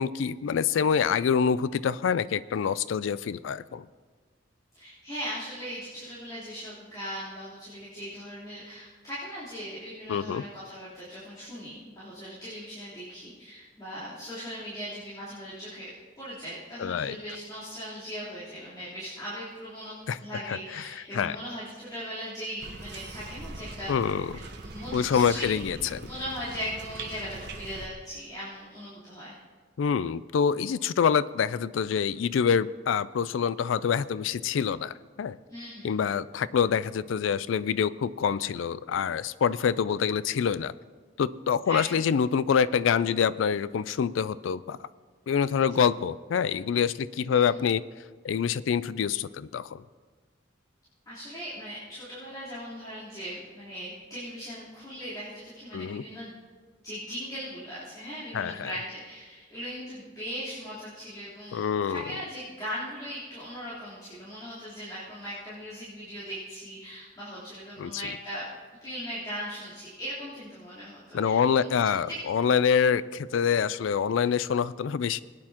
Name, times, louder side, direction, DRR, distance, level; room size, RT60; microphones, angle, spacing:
voice 1, 0.0-3.8 10.1-10.4 16.8-17.2 20.1-20.2 20.5-20.6 21.1-21.4 23.9-24.3 24.9-26.0 29.8-35.4 35.8-40.7 41.2-44.8 45.3-47.8 48.2-49.8 55.7-56.0 58.3-58.7 61.5-62.0 67.8-67.9 71.1-75.2, left 7 dB, 90° left, 18 dB, 0.4 m, -26 dB
voice 2, 4.7-15.9 16.2-23.9 24.3-29.4 35.5-35.9 41.7-42.1 47.3-47.6 51.1-56.4 56.8-68.5 68.8-72.2, equal, 20° left, -13 dB, 3.6 m, -39 dB
sound 1, 22.6-27.9, right 3 dB, 60° right, 1.1 m, -42 dB
20.5 x 9.7 x 2.9 m, 1.4 s
head